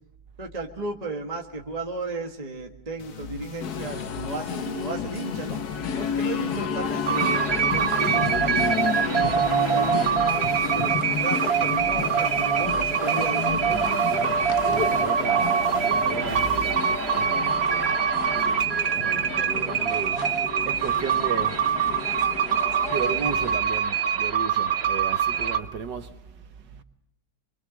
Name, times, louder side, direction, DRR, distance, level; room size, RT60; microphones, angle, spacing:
voice 1, 0.4-5.6 5.9-10.1 10.7-13.8, right 3 dB, 20° right, 1.6 m, -34 dB
sound 1, 3.0-18.4, left 6 dB, 90° left, 2.4 m, -41 dB
sound 2, 3.6-23.6, left 6 dB, 55° left, 1.5 m, -32 dB
sound 3, 7.1-25.6, right 7 dB, 40° right, 1.0 m, -24 dB
voice 2, 13.7-18.0 18.4-22.0 22.8-26.8, right 6 dB, 65° right, 1.8 m, -35 dB
24.5 x 24.0 x 6.4 m
omnidirectional pair, 2.2 m